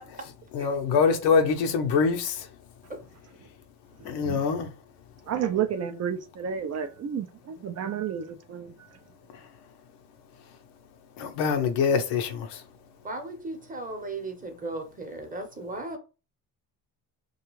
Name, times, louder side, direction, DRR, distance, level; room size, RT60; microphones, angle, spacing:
voice 1, 0.5-2.3 4.1-4.7 11.2-12.5, left 5 dB, 75° left, 0.7 m, -24 dB
voice 2, 5.3-8.7, right 8 dB, 40° right, 0.4 m, -31 dB
voice 3, 13.0-16.0, right 2 dB, 20° right, 0.8 m, -36 dB
2.5 x 2.3 x 3.0 m
supercardioid pair, 80°, 42 cm